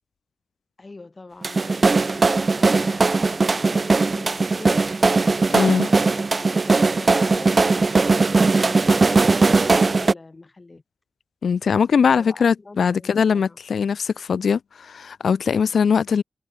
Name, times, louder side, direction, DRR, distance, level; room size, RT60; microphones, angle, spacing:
voice 1, 0.8-4.9 5.7-10.8 12.1-13.6, left 3 dB, 45° left, 7.3 m, -43 dB
sound 1, 1.4-10.1, right 3 dB, 55° right, 0.9 m, -19 dB
voice 2, 5.5-5.9 11.4-16.2, left 6 dB, 85° left, 0.6 m, -21 dB
cardioid pair, 40°, 0 cm